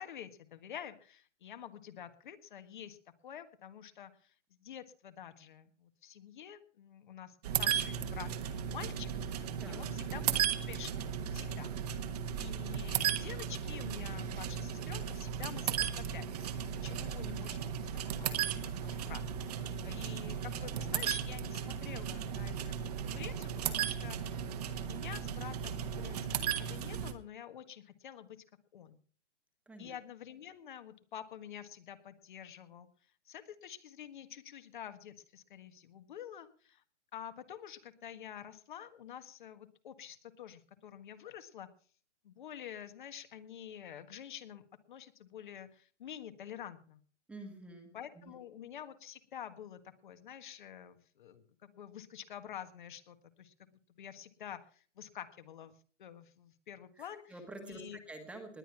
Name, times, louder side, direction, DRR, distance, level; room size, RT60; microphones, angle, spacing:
voice 1, 0.0-3.0 3.2-11.7 12.4-16.5 16.8-24.4 24.8-26.3 26.6-28.4 28.7-29.0 29.8-32.9 33.2-36.8 37.1-41.7 42.2-47.0 47.9-53.5 54.0-57.3 57.6-58.0, left 9 dB, 45° left, 10 dB, 1.5 m, -48 dB
sound 1, 7.4-27.1, right 8 dB, 35° right, 1.4 m, -36 dB
voice 2, 9.6-9.9 29.7-30.0 47.3-48.4 57.0-58.6, right 2 dB, 5° right, 4 dB, 1.4 m, -49 dB
20.0 x 9.2 x 5.8 m, 0.43 s
hypercardioid pair, 160°, 36 cm